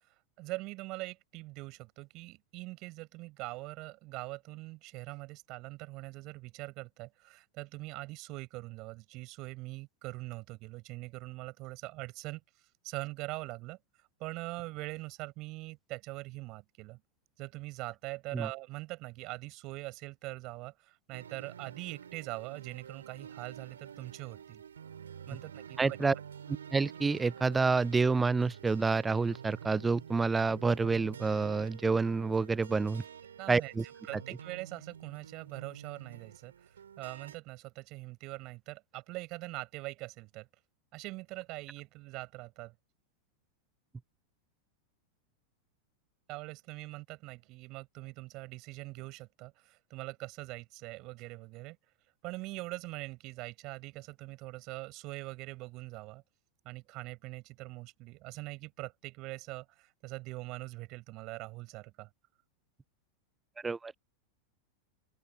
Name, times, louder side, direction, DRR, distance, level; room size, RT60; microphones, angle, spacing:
voice 1, 0.0-17.0 17.4-24.6 25.3-26.0 33.4-33.7 34.1-40.5 40.9-42.7 46.3-51.8 52.2-56.2 56.6-62.1, right 22 dB, 40° right, 7.7 m, -43 dB
sound 1, 21.1-37.4, right 8 dB, 65° right, 4.6 m, -49 dB
voice 2, 25.8-26.1 26.7-33.0 33.5-33.8 63.6-63.9, right 4 dB, 15° right, 0.6 m, -28 dB
open air
figure-of-eight pair, 90°, 0 cm